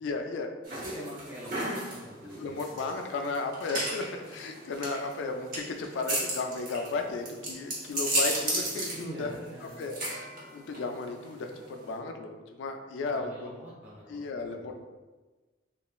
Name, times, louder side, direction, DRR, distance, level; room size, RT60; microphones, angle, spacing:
voice 1, 0.0-0.5 2.4-13.5 14.1-14.8, left 3 dB, 75° left, 5 dB, 0.3 m, -35 dB
sound 1, 0.7-12.0, right 1 dB, 50° right, 0.8 m, -35 dB
voice 2, 0.8-2.7 8.9-9.8 13.1-14.4, equal, 10° right, -8 dB, 0.7 m, -43 dB
3.0 x 2.4 x 2.2 m, 1.3 s
head